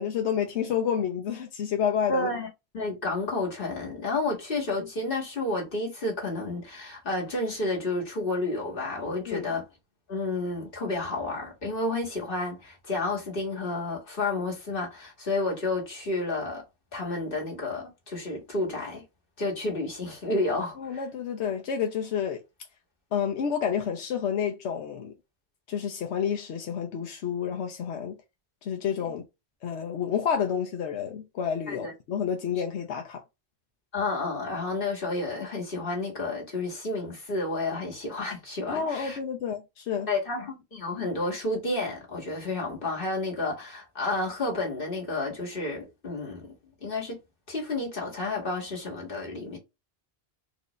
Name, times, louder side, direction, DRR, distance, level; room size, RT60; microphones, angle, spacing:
voice 1, 0.0-2.4 9.3-9.5 20.8-22.4 23.1-25.1 25.7-28.2 28.6-29.2 29.6-33.2 38.7-40.1, left 7 dB, 90° left, 1.0 m, -29 dB
voice 2, 2.1-2.5 2.7-9.6 10.1-16.6 16.9-19.0 19.4-21.0 29.0-29.2 31.7-31.9 33.9-39.2 40.1-46.5 46.8-47.2 47.5-49.6, left 2 dB, 55° left, 2.0 m, -31 dB
4.5 x 2.7 x 3.1 m
omnidirectional pair, 1.1 m